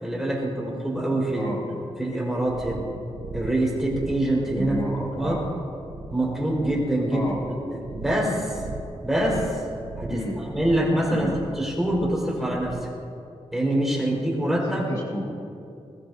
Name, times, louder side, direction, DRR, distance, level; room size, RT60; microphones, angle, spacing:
voice 1, 0.0-1.5 2.0-2.8 3.3-4.8 5.1-5.4 6.1-7.2 7.7-8.6 9.0-9.6 10.0-12.9 13.5-14.9, right 1 dB, 5° right, -4 dB, 4.9 m, -25 dB
voice 2, 1.3-1.6 4.5-5.4 7.1-7.4 10.1-10.4 11.1-11.3 14.6-15.2, left 1 dB, 35° left, -4 dB, 2.0 m, -31 dB
sound 1, 2.5-13.0, right 4 dB, 70° right, 0.7 m, -40 dB
21.0 x 20.0 x 2.8 m, 2.5 s
wide cardioid pair, 140°, 11 cm